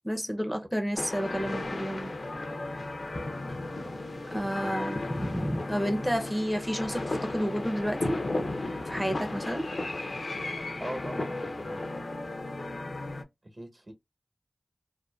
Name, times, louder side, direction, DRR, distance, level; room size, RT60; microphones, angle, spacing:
voice 1, 0.0-2.1 4.3-8.2 8.8-9.7, equal, 5° left, 0.5 m, -31 dB
sound 1, 1.0-13.2, left 2 dB, 70° left, 0.5 m, -34 dB
voice 2, 10.8-11.8 13.5-13.9, right 1 dB, 50° right, 0.9 m, -40 dB
2.6 x 2.5 x 2.2 m
wide cardioid pair, 50°, 0 cm